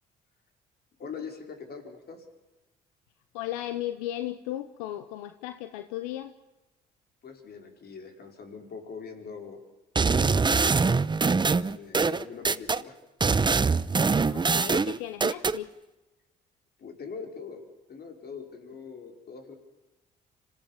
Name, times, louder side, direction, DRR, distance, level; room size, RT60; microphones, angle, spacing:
voice 1, 1.0-2.3 7.2-9.6 10.1-10.9 11.4-13.0 16.8-17.6 17.9-19.6, left 5 dB, 55° left, 4 dB, 4.9 m, -42 dB
voice 2, 3.3-6.3 14.2-15.7, left 13 dB, 90° left, 10 dB, 0.9 m, -35 dB
sound 1, 10.0-12.8 13.2-15.6, right 4 dB, 25° right, 0.8 m, -23 dB
26.0 x 16.0 x 7.2 m, 1.0 s
hypercardioid pair, 60°, 19 cm